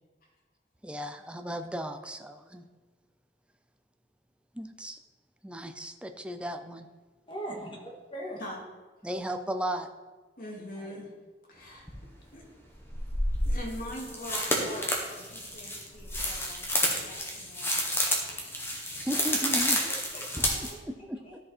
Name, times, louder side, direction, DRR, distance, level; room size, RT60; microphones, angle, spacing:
voice 1, 0.8-2.6 4.5-5.0 5.4-6.9 9.0-9.9 19.0-19.8 20.6-21.4, equal, 5° right, 6 dB, 0.6 m, -35 dB
voice 2, 7.3-8.4 10.8-11.0 19.9-21.4, right 1 dB, 30° left, -1 dB, 2.1 m, -42 dB
voice 3, 10.4-11.1 11.5-11.9 12.3-12.5 13.4-18.2 20.4-20.7, equal, 55° left, -2 dB, 2.4 m, -43 dB
sound 1, 11.9-12.0 12.9-20.7, left 1 dB, 15° left, 1.5 m, -30 dB
13.5 x 5.1 x 4.4 m, 1.3 s
head